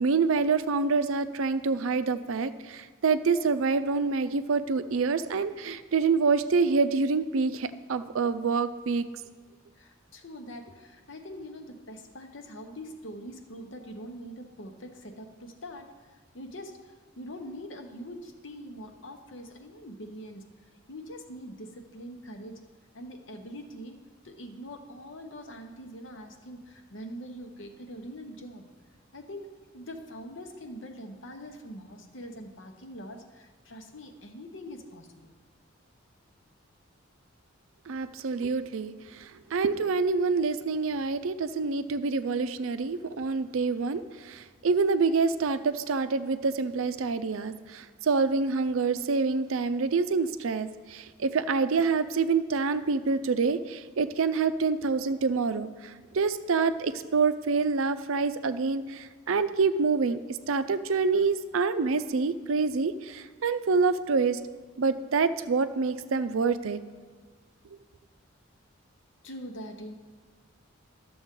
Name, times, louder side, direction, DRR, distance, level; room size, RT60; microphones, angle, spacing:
voice 1, 0.0-9.1 37.9-60.2 60.5-64.4 64.8-66.8, right 4 dB, 75° right, 11 dB, 0.5 m, -27 dB
voice 2, 9.7-20.4 20.9-22.6 22.9-24.0 24.2-28.7 29.1-29.5 29.7-35.3 69.2-69.9, equal, 60° left, 5 dB, 0.9 m, -43 dB
12.5 x 7.0 x 3.7 m, 1.4 s
head